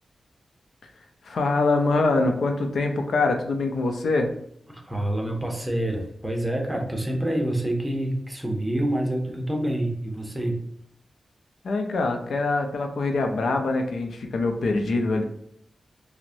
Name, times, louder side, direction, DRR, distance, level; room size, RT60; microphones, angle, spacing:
voice 1, 1.2-4.3 11.6-15.2, left 3 dB, 85° left, 4 dB, 0.5 m, -24 dB
voice 2, 4.7-10.6, right 1 dB, 10° right, 1 dB, 0.7 m, -27 dB
6.0 x 2.1 x 2.7 m, 0.69 s
wide cardioid pair, 135°, 0 cm